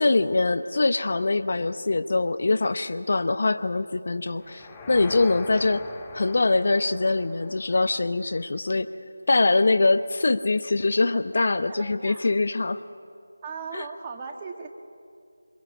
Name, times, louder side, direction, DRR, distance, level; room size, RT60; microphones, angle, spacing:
voice 1, 0.0-5.8 6.1-8.9 9.3-12.8 13.7-13.8, left 3 dB, 50° left, 9 dB, 0.9 m, -23 dB
sound 1, 4.4-8.5, left 3 dB, 10° left, 1.6 m, -42 dB
voice 2, 11.7-12.3 13.4-14.7, right 5 dB, 20° right, 4 dB, 1.9 m, -38 dB
28.0 x 23.5 x 8.4 m, 2.3 s
figure-of-eight pair, 165°, 0 cm